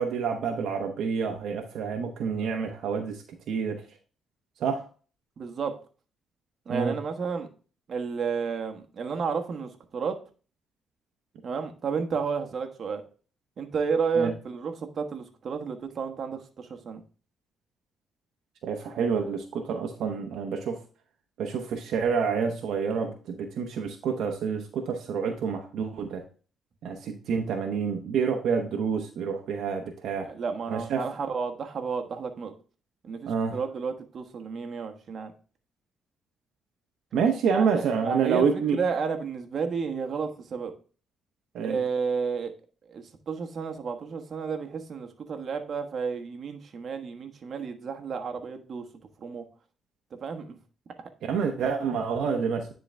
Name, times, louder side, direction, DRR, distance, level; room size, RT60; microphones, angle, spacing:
voice 1, 0.0-3.8 4.6-4.9 6.7-7.0 14.2-14.3 18.6-20.8 21.4-26.2 26.8-30.3 30.7-31.1 33.3-33.6 37.1-38.8 41.5-41.8 51.2-52.7, right 6 dB, 75° right, 2 dB, 0.9 m, -28 dB
voice 2, 5.4-5.7 6.7-7.5 7.9-10.2 11.4-13.0 13.6-17.0 26.9-27.0 30.3-32.5 33.0-35.3 37.5-38.5 38.7-40.7 41.6-42.5 42.9-48.9 49.2-49.4 50.2-50.6 51.0-51.1, right 5 dB, 50° right, 5 dB, 1.2 m, -31 dB
10.0 x 3.8 x 3.4 m, 0.37 s
cardioid pair, 90°, 0 cm